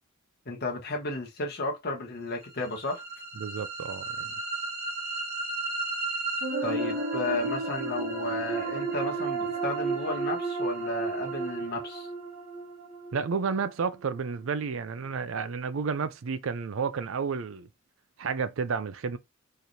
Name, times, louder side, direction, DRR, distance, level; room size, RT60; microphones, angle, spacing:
voice 1, 0.4-3.0 6.6-12.1, left 2 dB, 50° left, 1.2 m, -33 dB
sound 1, 2.6-14.6, right 3 dB, 45° right, 1.1 m, -33 dB
voice 2, 3.4-4.3 13.1-17.7 18.2-19.2, right 5 dB, 65° right, 0.4 m, -31 dB
4.2 x 3.2 x 2.7 m
head